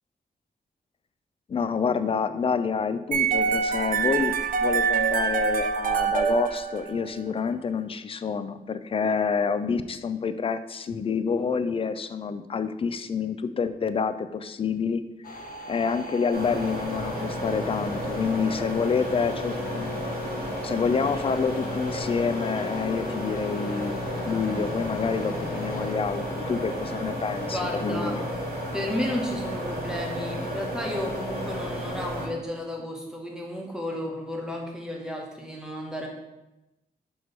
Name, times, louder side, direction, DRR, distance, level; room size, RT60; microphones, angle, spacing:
voice 1, 1.5-15.0 15.7-19.9 20.6-28.2, left 5 dB, 35° left, 11 dB, 0.4 m, -28 dB
sound 1, 3.1-7.2, right 6 dB, 60° right, 0.6 m, -25 dB
sound 2, 15.2-25.9, left 3 dB, 70° left, 0.8 m, -39 dB
sound 3, 16.3-32.3, equal, 90° right, 1.9 m, -32 dB
voice 2, 27.5-28.2 28.7-36.1, left 1 dB, 5° right, 0 dB, 1.1 m, -33 dB
6.2 x 3.1 x 5.4 m, 0.94 s
wide cardioid pair, 145°, 16 cm